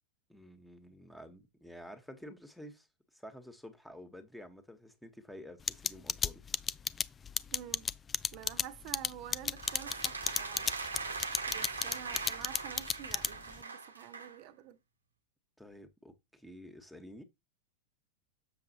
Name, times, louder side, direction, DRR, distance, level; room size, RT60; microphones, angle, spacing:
voice 1, 0.3-2.9 3.1-6.4 15.6-17.2, equal, ahead, 1.4 m, -50 dB
sound 1, 5.7-13.6, left 6 dB, 20° left, 0.3 m, -32 dB
voice 2, 7.5-7.9 8.3-10.7 11.5-14.8, right 11 dB, 45° right, 1.1 m, -48 dB
sound 2, 9.6-14.4, right 4 dB, 75° right, 1.2 m, -41 dB
7.8 x 6.9 x 2.9 m
figure-of-eight pair, 90°, 0 cm